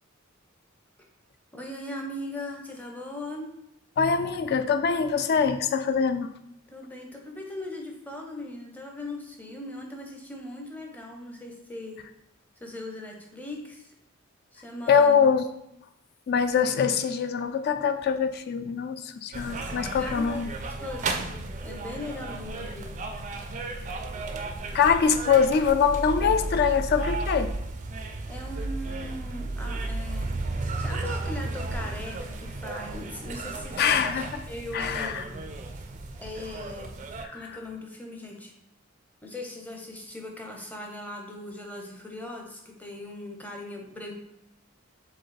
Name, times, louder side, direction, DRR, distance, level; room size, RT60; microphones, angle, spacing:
voice 1, 1.5-3.5 6.7-12.0 12.6-13.9 14.5-15.3 19.6-20.4 20.8-22.9 28.0-30.3 30.6-35.7 36.2-36.9 37.3-38.5 39.2-44.1, left 1 dB, 10° left, 1 dB, 0.6 m, -39 dB
voice 2, 4.0-6.3 14.9-15.5 16.3-20.5 24.7-27.5 33.8-34.4 34.7-35.2 37.2-37.3, left 6 dB, 50° left, 10 dB, 0.3 m, -23 dB
sound 1, 19.3-37.2, right 2 dB, 35° right, 0.3 m, -34 dB
4.6 x 3.5 x 3.2 m, 0.82 s
head